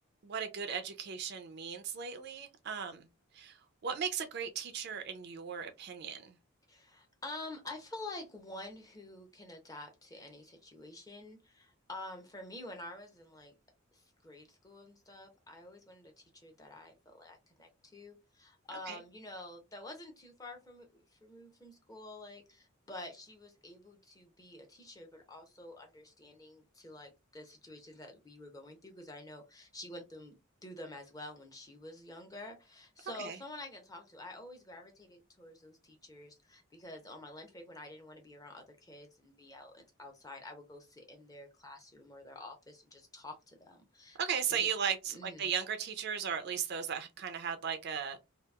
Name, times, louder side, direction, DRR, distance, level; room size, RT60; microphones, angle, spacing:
voice 1, 0.2-3.1 3.3-3.6 3.8-6.3 18.9-19.0 33.2-33.4 44.2-48.2, right 7 dB, 45° right, 0.4 m, -36 dB
voice 2, 6.7-13.5 13.9-44.2 44.6-44.7 45.1-45.5, left 2 dB, 15° left, 0.5 m, -49 dB
2.8 x 2.3 x 2.2 m
head